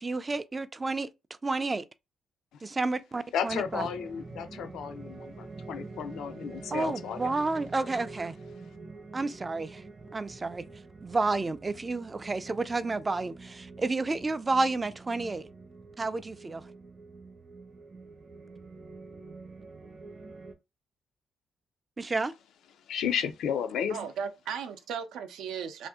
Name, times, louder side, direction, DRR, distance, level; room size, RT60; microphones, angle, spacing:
voice 1, 0.0-1.1 1.4-1.8 2.6-3.9 6.7-8.3 9.1-9.8 10.1-10.6 11.0-15.5 16.0-16.6 22.0-22.3, right 3 dB, 25° right, 0.3 m, -30 dB
voice 2, 3.3-7.3 22.9-24.0, left 8 dB, 80° left, 0.4 m, -33 dB
sound 1, 3.5-20.5, right 3 dB, 45° right, 0.8 m, -46 dB
voice 3, 23.9-25.9, right 7 dB, 85° right, 0.5 m, -36 dB
2.6 x 2.5 x 3.6 m
cardioid pair, 90°, 0 cm